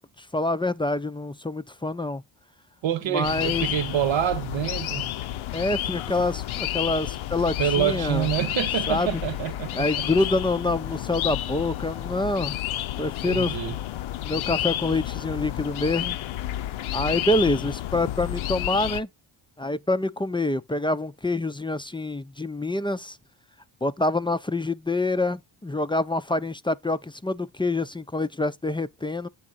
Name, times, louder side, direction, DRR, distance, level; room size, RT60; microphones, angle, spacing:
voice 1, 0.2-2.2 3.1-3.7 5.5-8.4 8.9-9.2 9.7-12.6 13.0-13.6 14.2-16.2 16.9-19.1 19.6-23.2 23.8-29.3, left 2 dB, 10° left, 0.4 m, -26 dB
voice 2, 2.8-5.1 7.6-10.0 13.2-13.7, right 10 dB, 70° right, 1.1 m, -27 dB
sound 1, 3.2-19.0, left 13 dB, 85° left, 0.7 m, -30 dB
8.5 x 3.7 x 4.0 m
cardioid pair, 85°, 47 cm